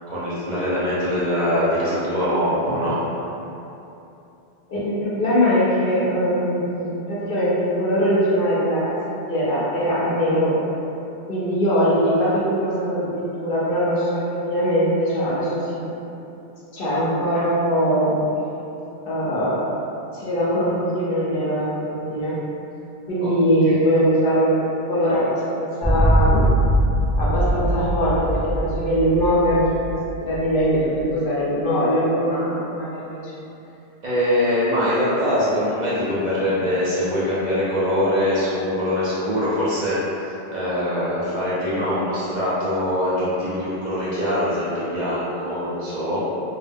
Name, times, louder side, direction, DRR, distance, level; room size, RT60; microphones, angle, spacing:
voice 1, 0.1-3.2 23.7-23.8 34.0-46.2, equal, 50° right, -10 dB, 0.6 m, -23 dB
voice 2, 4.7-9.0 9.3-10.5 11.3-15.9 16.7-18.2 19.0-19.6 20.1-22.4 23.1-26.5 27.2-33.3, equal, 60° left, -8 dB, 0.7 m, -21 dB
sound 1, 25.8-31.0, right 1 dB, 5° left, 0.4 m, -21 dB
2.1 x 2.1 x 3.4 m, 2.9 s
omnidirectional pair, 1.1 m